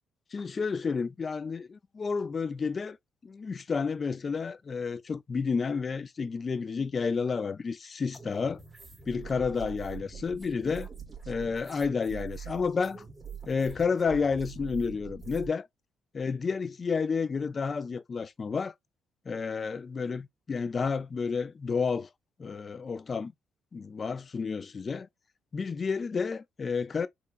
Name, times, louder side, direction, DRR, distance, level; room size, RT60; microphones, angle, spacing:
voice 1, 0.3-3.0 3.2-8.6 9.1-10.9 11.3-13.0 13.5-15.7 16.1-18.7 19.3-22.1 22.4-23.3 23.7-25.1 25.5-27.1, left 5 dB, 40° left, 0.4 m, -31 dB
sound 1, 8.1-15.5, right 7 dB, 15° right, 1.9 m, -44 dB
4.3 x 2.9 x 2.4 m
cardioid pair, 90°, 0 cm